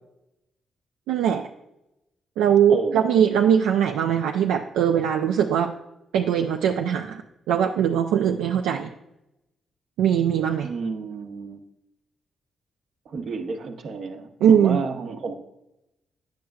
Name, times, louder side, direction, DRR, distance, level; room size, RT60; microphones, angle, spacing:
voice 1, 1.1-1.5 2.4-5.7 6.1-7.2 7.5-8.9 10.0-10.7 14.4-14.8, right 8 dB, 85° right, 3 dB, 0.3 m, -21 dB
voice 2, 2.7-3.0 10.6-11.6 13.1-15.3, right 4 dB, 70° right, 5 dB, 0.9 m, -31 dB
9.2 x 6.4 x 2.3 m, 0.89 s
supercardioid pair, 55°, 0 cm